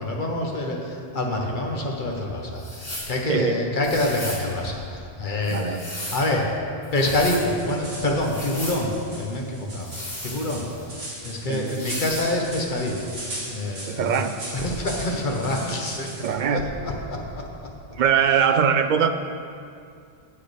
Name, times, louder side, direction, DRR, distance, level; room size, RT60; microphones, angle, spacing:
voice 1, 0.0-5.8 6.1-6.5 6.9-9.9 10.2-14.2 14.5-16.1 16.5-17.7, left 1 dB, 50° left, 0 dB, 1.4 m, -26 dB
sound 1, 2.6-3.1 3.8-4.5 5.4-6.3 6.8-7.4 8.2-8.8 9.8-10.8 11.7-12.3, left 1 dB, 70° left, 3.0 m, -35 dB
voice 2, 3.3-3.6 5.5-5.9 11.5-12.0 13.9-14.4 16.2-16.7 17.9-19.1, right 7 dB, 60° right, 9 dB, 0.6 m, -22 dB
sound 2, 7.4-16.3, right 1 dB, 75° right, 2.3 m, -39 dB
17.5 x 6.7 x 3.4 m, 2.4 s
omnidirectional pair, 1.1 m